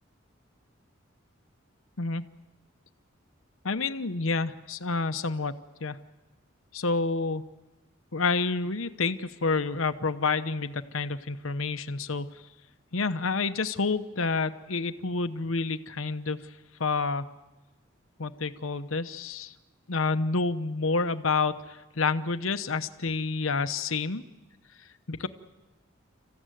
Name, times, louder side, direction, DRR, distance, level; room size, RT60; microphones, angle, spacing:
voice 1, 3.6-5.5 5.8-6.0 6.7-7.4 8.1-12.3 12.9-16.5 16.8-17.3 18.2-19.5 19.9-24.2 25.1-25.3, left 4 dB, 85° left, 10 dB, 1.0 m, -29 dB
28.0 x 15.5 x 9.3 m, 1.1 s
head